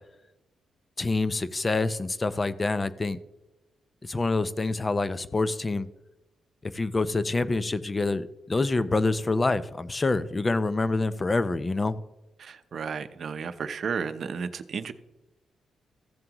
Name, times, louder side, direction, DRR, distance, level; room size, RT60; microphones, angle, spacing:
voice 1, 1.0-3.2 4.0-5.9 6.6-12.0, left 3 dB, 20° left, 14 dB, 0.5 m, -26 dB
voice 2, 12.4-14.9, right 6 dB, 50° right, 10 dB, 0.7 m, -33 dB
15.0 x 7.4 x 3.0 m, 0.99 s
cardioid pair, 130°, 0 cm